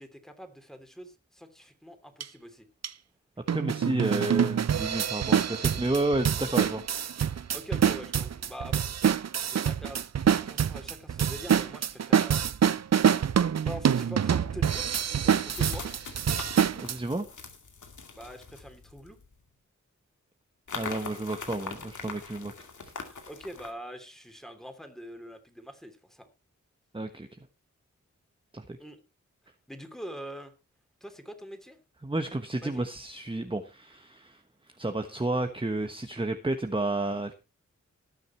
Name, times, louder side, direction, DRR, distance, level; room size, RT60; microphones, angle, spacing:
voice 1, 0.0-2.7 7.5-9.0 9.4-10.1 10.4-12.4 13.6-15.9 18.1-19.2 23.3-26.3 28.8-29.0 29.7-30.5 31.0-31.8 32.6-32.8, equal, ahead, 7 dB, 3.3 m, -44 dB
sound 1, 2.2-2.3 2.8-2.9 3.5-17.0, right 8 dB, 60° right, 0.6 m, -26 dB
voice 2, 3.5-7.4 16.8-17.3 20.7-22.5 22.8-22.9 26.9-27.3 28.5-28.8 32.0-34.4 34.8-37.3, right 2 dB, 15° right, 7 dB, 1.3 m, -31 dB
sound 2, 14.1-14.2 15.5-19.3 20.7-23.7, left 4 dB, 75° left, 2.3 m, -42 dB
18.5 x 6.5 x 4.4 m, 0.30 s
cardioid pair, 50°, 30 cm